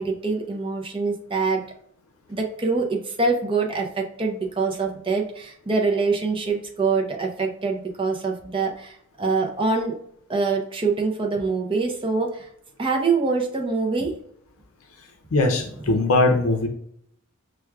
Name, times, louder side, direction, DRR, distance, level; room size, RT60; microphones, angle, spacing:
voice 1, 0.0-1.6 2.3-9.9 10.3-12.5 12.8-14.2 15.9-16.0, right 4 dB, 25° right, 1 dB, 0.5 m, -24 dB
voice 2, 15.3-16.7, left 2 dB, 75° left, 4 dB, 0.6 m, -20 dB
5.9 x 2.2 x 2.3 m, 0.69 s
head